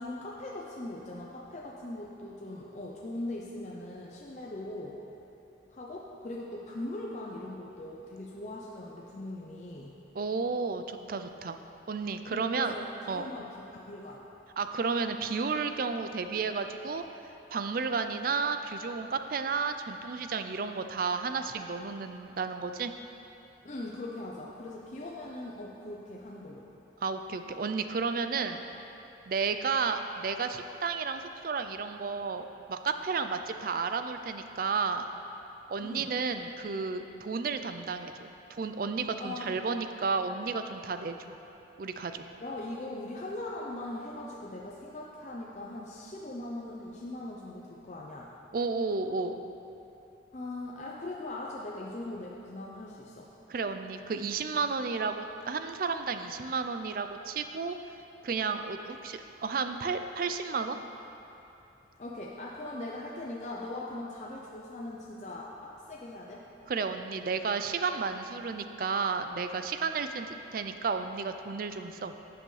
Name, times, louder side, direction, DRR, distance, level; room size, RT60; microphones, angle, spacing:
voice 1, 0.0-4.9 5.7-9.9 12.3-14.2 23.6-26.7 35.8-36.1 39.2-39.6 42.4-48.3 50.3-53.3 62.0-66.4, left 2 dB, 40° left, -3 dB, 0.6 m, -40 dB
voice 2, 10.2-11.6 11.9-12.7 13.1-13.3 14.6-17.0 17.5-22.9 27.0-28.6 29.3-35.1 35.7-41.3 41.8-42.2 48.5-49.4 53.5-57.8 58.2-60.8 66.7-72.1, right 5 dB, 50° right, 8 dB, 0.4 m, -32 dB
11.5 x 7.7 x 3.2 m, 2.9 s
head